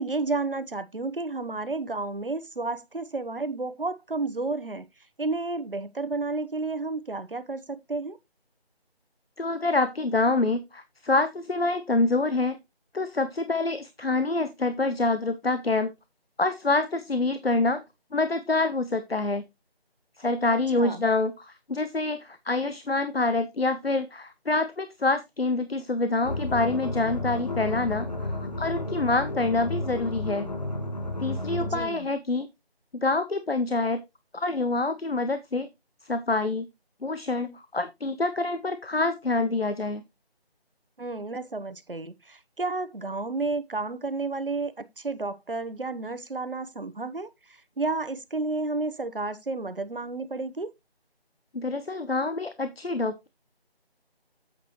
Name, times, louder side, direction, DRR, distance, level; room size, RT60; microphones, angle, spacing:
voice 1, 0.0-4.8 5.2-8.2 20.8-21.0 31.6-32.1 41.0-47.3 47.8-50.7, right 3 dB, 60° right, 1.2 m, -31 dB
voice 2, 9.4-12.6 12.9-15.9 16.4-17.8 18.1-19.4 20.2-30.5 31.2-32.5 32.9-34.0 34.3-35.7 36.1-36.7 37.0-40.0 51.5-53.3, left 3 dB, 70° left, 1.1 m, -26 dB
sound 1, 26.2-31.9, left 2 dB, 40° left, 1.8 m, -32 dB
9.5 x 7.8 x 3.0 m
figure-of-eight pair, 165°, 31 cm